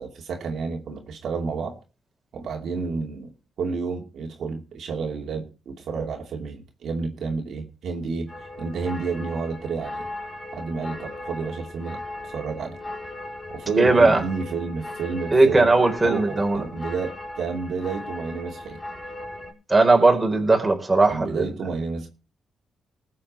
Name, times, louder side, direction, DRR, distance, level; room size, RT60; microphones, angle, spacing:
voice 1, 0.0-1.7 2.3-3.3 3.6-8.3 8.6-10.0 10.5-12.8 13.5-15.7 16.0-18.8 21.1-22.1, right 4 dB, 70° right, 2.7 m, -30 dB
sound 1, 8.3-19.5, left 2 dB, 15° left, 5.3 m, -38 dB
voice 2, 13.8-14.2 15.3-16.6 19.7-21.4, right 3 dB, 20° right, 4.2 m, -18 dB
20.0 x 7.6 x 4.3 m
cardioid pair, 95°, 0 cm